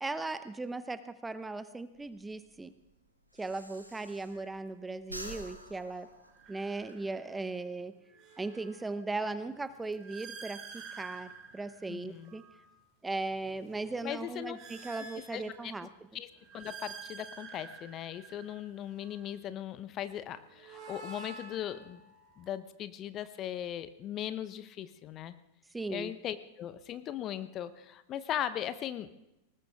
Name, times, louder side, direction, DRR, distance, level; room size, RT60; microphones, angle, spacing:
voice 1, 0.0-2.7 3.4-6.1 6.5-8.0 8.4-12.4 13.0-15.9 25.7-26.1, right 3 dB, 10° right, 13 dB, 0.9 m, -38 dB
Breathing, 1.9-4.7 5.0-7.0, equal, 90° right, 2.1 m, -48 dB
sound 1, 4.3-4.6 6.2-7.4 7.9-12.7 13.2-15.9 16.3-19.3 20.3-22.6, right 4 dB, 35° right, 3.1 m, -50 dB
voice 2, 11.9-12.3 14.0-14.6 15.3-15.7 16.1-16.3 16.5-22.0 22.4-25.4 25.9-29.1, left 11 dB, 30° left, 13 dB, 0.9 m, -38 dB
20.0 x 19.0 x 3.6 m, 0.88 s
figure-of-eight pair, 90°, 0 cm